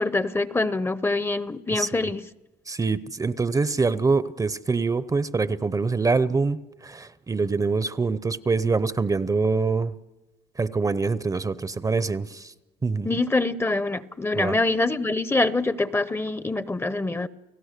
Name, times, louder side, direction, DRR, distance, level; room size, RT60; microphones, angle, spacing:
voice 1, 0.0-2.2 13.0-17.3, left 2 dB, 15° left, 0.7 m, -25 dB
voice 2, 2.7-9.9 10.6-12.5 12.8-13.1 14.3-14.6, right 4 dB, 20° right, 0.6 m, -25 dB
30.0 x 17.0 x 6.7 m
cardioid pair, 110°, 17 cm